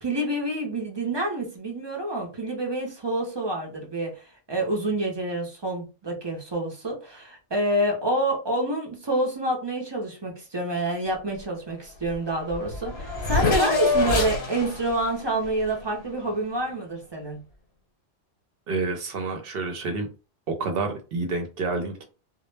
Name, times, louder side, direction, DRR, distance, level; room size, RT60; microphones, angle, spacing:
voice 1, 0.0-17.4, right 1 dB, 35° right, 0 dB, 0.4 m, -28 dB
Race car auto racing / Accelerating revving vroom, 12.1-12.2 12.4-16.4, left 3 dB, 70° left, 1.0 m, -27 dB
voice 2, 18.7-20.1 20.5-22.1, right 3 dB, 65° right, 4 dB, 0.7 m, -29 dB
2.1 x 2.0 x 3.1 m, 0.33 s
omnidirectional pair, 1.1 m